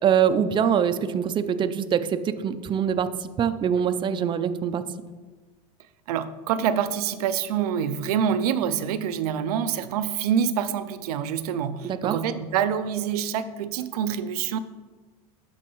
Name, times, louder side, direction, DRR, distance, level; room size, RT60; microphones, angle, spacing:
voice 1, 0.0-4.8 11.8-12.2, right 8 dB, 25° right, 10 dB, 0.4 m, -24 dB
voice 2, 6.1-14.6, right 8 dB, 85° right, 12 dB, 0.4 m, -26 dB
11.5 x 4.4 x 3.1 m, 1.3 s
supercardioid pair, 110°, 19 cm